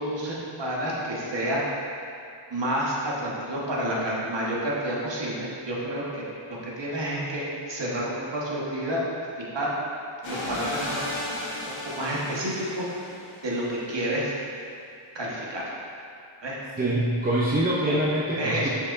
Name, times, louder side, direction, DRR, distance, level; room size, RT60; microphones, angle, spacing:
voice 1, 0.0-1.6 2.5-9.0 9.4-9.7 10.3-11.0 11.8-12.8 13.4-14.4 15.1-15.6 16.4-16.6 17.8-18.0 18.4-18.7, right 1 dB, 60° right, -5 dB, 1.4 m, -29 dB
sound 1, 10.2-13.7, left 1 dB, 70° left, 1.3 m, -34 dB
voice 2, 16.8-18.7, right 1 dB, 20° right, -7 dB, 0.7 m, -24 dB
6.4 x 6.1 x 2.6 m, 2.5 s
wide cardioid pair, 90°, 49 cm